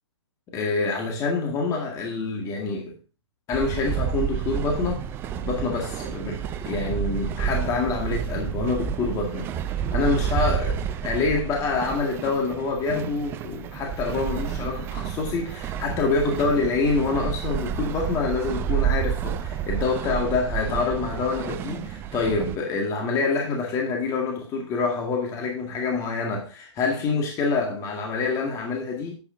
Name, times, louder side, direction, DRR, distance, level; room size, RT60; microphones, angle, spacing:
voice 1, 0.5-3.0 3.5-5.0 5.4-29.1, left 4 dB, 20° left, 2.0 m, -26 dB
sound 1, 3.5-22.6, right 9 dB, 15° right, 0.4 m, -30 dB
10.5 x 8.2 x 2.7 m
figure-of-eight pair, 130°, 15 cm